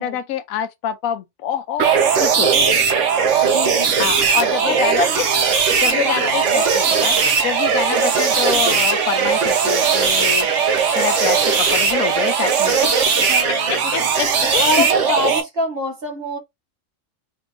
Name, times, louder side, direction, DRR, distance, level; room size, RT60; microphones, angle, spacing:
voice 1, 0.0-2.7 4.0-5.1 5.8-7.2 7.4-10.5 10.9-12.9 13.7-14.9, left 10 dB, 90° left, 1.0 m, -26 dB
sound 1, 1.8-15.4, right 6 dB, 65° right, 1.1 m, -18 dB
sound 2, 2.2-11.0, right 5 dB, 90° right, 1.3 m, -34 dB
voice 2, 3.4-5.2 5.8-6.7 7.9-8.2 13.3-16.4, equal, 45° right, 1.4 m, -26 dB
4.4 x 3.0 x 2.5 m
omnidirectional pair, 1.4 m